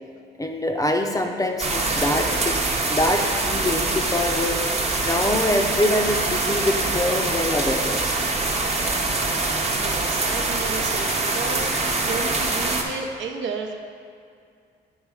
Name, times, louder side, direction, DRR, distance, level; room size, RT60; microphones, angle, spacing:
voice 1, 0.4-2.6 2.9-4.6 5.0-8.2, left 1 dB, 15° left, 3 dB, 0.6 m, -24 dB
sound 1, 1.6-12.8, right 3 dB, 30° right, 0.8 m, -24 dB
voice 2, 9.7-13.8, right 4 dB, 70° right, 2 dB, 0.8 m, -32 dB
8.0 x 3.2 x 4.9 m, 2.3 s
cardioid pair, 90°, 20 cm